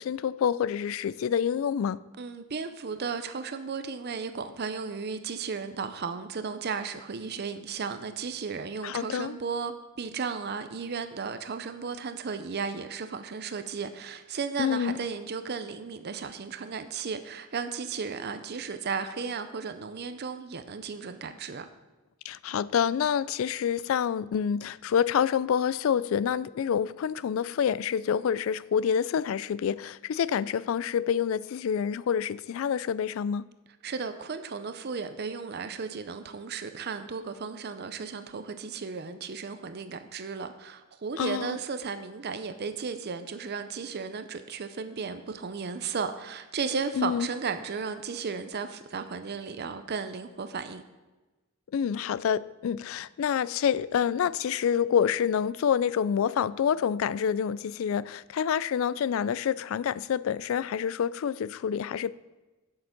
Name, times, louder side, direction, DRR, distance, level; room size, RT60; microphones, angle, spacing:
voice 1, 0.0-2.0 8.8-9.4 14.6-15.0 22.2-33.5 41.2-41.6 47.0-47.3 51.7-62.1, left 8 dB, 70° left, 0.3 m, -27 dB
voice 2, 2.2-21.7 33.8-50.8, right 5 dB, 50° right, 0.6 m, -35 dB
7.9 x 7.7 x 5.9 m
head